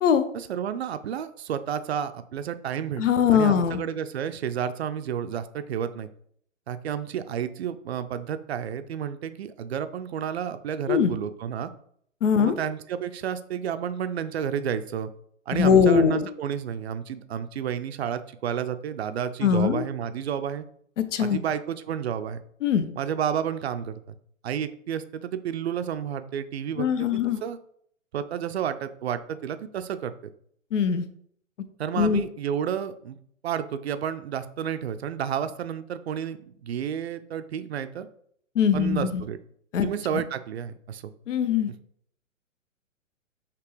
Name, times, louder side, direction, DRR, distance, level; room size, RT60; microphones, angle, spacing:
voice 1, 0.3-3.0 3.3-6.1 6.7-11.7 12.4-15.1 15.5-20.7 21.2-22.4 23.0-24.1 24.4-27.6 28.1-30.1 31.8-33.2 33.4-38.1 38.7-39.4 39.8-41.1, right 8 dB, 55° right, 11 dB, 0.5 m, -31 dB
voice 2, 3.0-3.8 10.9-11.1 12.2-12.6 15.5-16.3 19.4-19.8 21.1-21.4 22.6-22.9 26.8-27.4 30.7-31.0 32.0-32.2 38.6-39.2 39.7-39.9 41.3-41.7, left 7 dB, 70° left, 11 dB, 0.6 m, -21 dB
5.9 x 2.9 x 3.1 m, 0.65 s
figure-of-eight pair, 125°, 39 cm